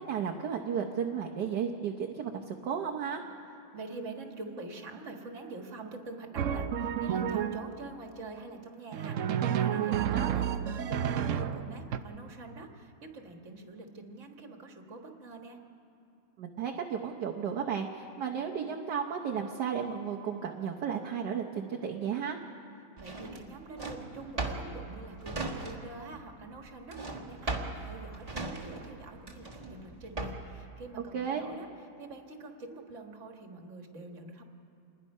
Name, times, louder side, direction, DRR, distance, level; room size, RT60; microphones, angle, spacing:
voice 1, 0.0-3.2 10.1-10.3 16.4-22.4 31.1-31.4, right 7 dB, 60° right, 1 dB, 1.4 m, -33 dB
voice 2, 3.7-15.6 23.0-31.7 32.0-34.4, right 3 dB, 40° right, 3 dB, 1.8 m, -45 dB
Drum, 6.4-7.8 8.9-12.0, right 9 dB, 80° right, 0.6 m, -30 dB
Drawer open or close, 23.0-26.1 26.3-30.6, right 2 dB, 20° right, 1.5 m, -38 dB
27.0 x 21.0 x 5.5 m, 2.7 s
omnidirectional pair, 2.2 m